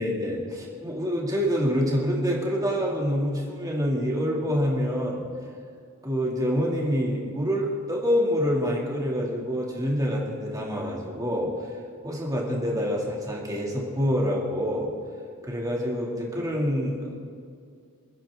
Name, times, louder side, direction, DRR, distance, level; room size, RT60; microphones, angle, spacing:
voice 1, 0.0-5.2 6.0-11.5 12.0-14.9 15.4-17.3, equal, 15° right, -3 dB, 2.7 m, -26 dB
28.5 x 9.8 x 3.8 m, 2.3 s
head